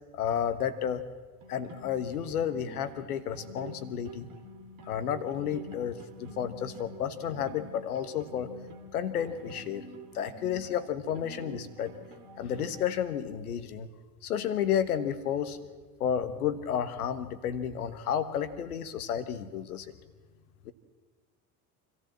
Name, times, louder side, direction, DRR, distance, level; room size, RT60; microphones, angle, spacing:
voice 1, 0.1-1.0 1.5-4.3 4.9-8.5 8.9-9.9 10.1-11.9 12.4-13.9 14.2-15.6 16.0-19.9 20.6-20.7, left 9 dB, 70° left, 12 dB, 1.4 m, -31 dB
sound 1, 1.4-12.8, right 1 dB, 45° right, 2.4 m, -47 dB
25.5 x 14.5 x 7.5 m, 1.4 s
figure-of-eight pair, 65°, 47 cm